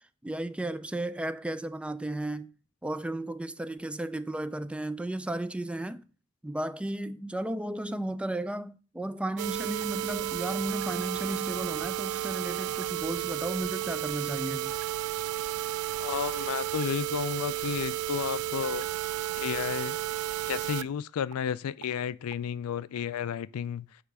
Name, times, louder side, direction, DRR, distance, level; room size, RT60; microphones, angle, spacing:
voice 1, 0.2-2.5 2.8-6.1 6.4-14.8, right 1 dB, 5° right, 0.3 m, -34 dB
sound 1, 9.4-20.8 21.3-21.4 21.8-21.9 22.3-22.4, right 13 dB, 85° right, 0.3 m, -32 dB
voice 2, 16.0-18.9 19.4-20.0 20.5-23.9, left 8 dB, 80° left, 0.4 m, -32 dB
8.0 x 3.2 x 6.0 m
head